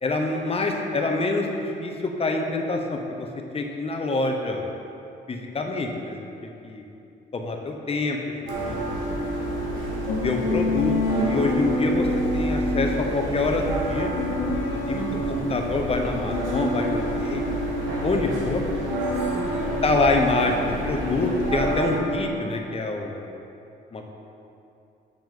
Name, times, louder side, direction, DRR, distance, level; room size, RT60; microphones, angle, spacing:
voice 1, 0.0-3.3 3.5-4.6 5.3-6.1 6.4-6.8 7.3-8.2 8.6-9.3 10.2-12.1 12.3-17.4 18.0-18.7 19.8-23.3 23.9-24.1, left 2 dB, 30° left, 2 dB, 0.9 m, -26 dB
sound 1, 8.5-22.0, right 1 dB, 80° right, 1.4 m, -29 dB
sound 2, 10.0-15.7 16.3-21.6, left 2 dB, 90° left, 1.3 m, -29 dB
voice 2, 14.9-15.5 19.3-19.8, equal, 10° right, -6 dB, 1.6 m, -35 dB
7.1 x 5.7 x 3.7 m, 2.7 s
cardioid pair, 90°, 20 cm